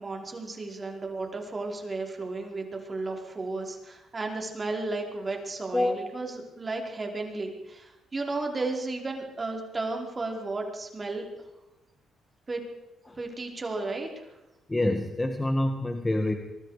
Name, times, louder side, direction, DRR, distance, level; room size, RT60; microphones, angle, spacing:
voice 1, 0.0-11.3 12.5-12.6 13.2-14.2, right 3 dB, 30° right, 2 dB, 5.1 m, -34 dB
voice 2, 14.7-16.3, left 1 dB, 15° left, 5 dB, 2.0 m, -26 dB
25.0 x 23.0 x 5.2 m, 0.98 s
cardioid pair, 90°, 0 cm